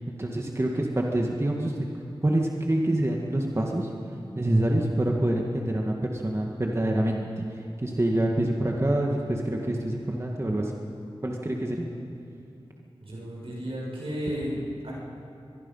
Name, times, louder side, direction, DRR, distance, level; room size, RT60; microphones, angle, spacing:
voice 1, 0.1-1.9 2.2-3.9 4.3-7.4 7.8-10.8 11.2-11.9, right 1 dB, 30° right, -1 dB, 1.9 m, -26 dB
voice 2, 13.0-14.9, equal, 80° right, -4 dB, 7.0 m, -33 dB
23.5 x 23.0 x 5.7 m, 2.6 s
wide cardioid pair, 70°, 10 cm